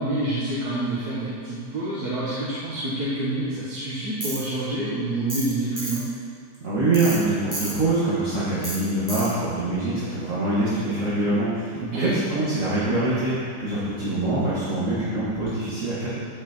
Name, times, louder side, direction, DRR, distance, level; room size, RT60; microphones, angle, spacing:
voice 1, 0.0-6.0 11.8-12.1, right 1 dB, 70° right, -8 dB, 2.1 m, -27 dB
Tools, 4.2-4.4 5.3-5.5 5.8-6.0 6.9-7.2 7.5-7.7 8.6-8.8 9.1-9.3, right 1 dB, 10° right, 1.7 m, -31 dB
voice 2, 6.6-13.3 13.6-16.1, right 2 dB, 50° right, -10 dB, 2.1 m, -24 dB
15.5 x 6.1 x 4.5 m, 2.2 s
omnidirectional pair, 1.7 m